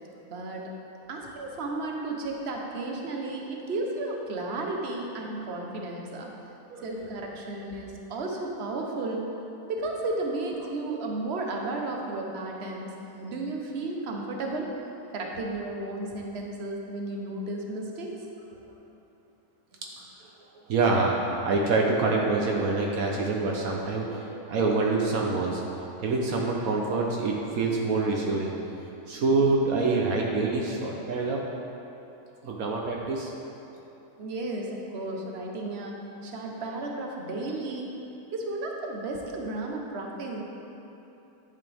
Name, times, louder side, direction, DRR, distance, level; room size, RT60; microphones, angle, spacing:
voice 1, 0.3-0.7 1.1-6.3 6.8-9.3 9.7-14.7 15.1-18.2 34.2-36.0 36.2-38.0 38.3-40.4, right 2 dB, 50° right, 0 dB, 1.2 m, -33 dB
voice 2, 20.7-25.6 26.0-28.6 29.1-31.4 32.4-33.3, right 3 dB, 70° right, -1 dB, 1.3 m, -26 dB
11.0 x 8.2 x 3.4 m, 3.0 s
omnidirectional pair, 1.5 m